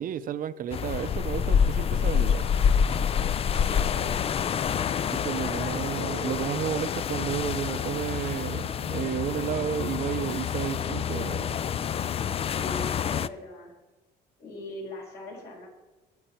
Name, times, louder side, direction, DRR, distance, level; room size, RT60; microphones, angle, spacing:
voice 1, 0.0-2.5 5.1-11.6, right 9 dB, 55° right, 0.7 m, -32 dB
sound 1, 0.7-13.3, left 7 dB, 35° left, 0.4 m, -27 dB
voice 2, 3.6-4.3 5.4-6.5 12.4-13.8 14.4-15.7, left 2 dB, 65° left, 5.9 m, -40 dB
23.0 x 8.1 x 4.5 m
cardioid pair, 110°, 17 cm